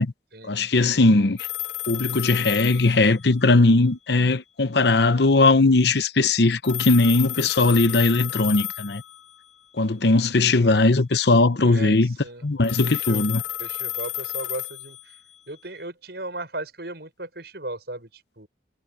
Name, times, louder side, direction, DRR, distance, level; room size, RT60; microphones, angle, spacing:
voice 1, 0.4-1.4 1.9-9.0 9.8-12.2 12.4-13.4, left 3 dB, 65° left, 0.8 m, -19 dB
sound 1, 1.4-3.7 6.6-9.5 12.6-15.6, left 15 dB, 90° left, 3.0 m, -32 dB
voice 2, 11.6-12.4 12.9-13.2 13.6-15.1 15.5-18.5, right 2 dB, 60° right, 6.8 m, -36 dB
head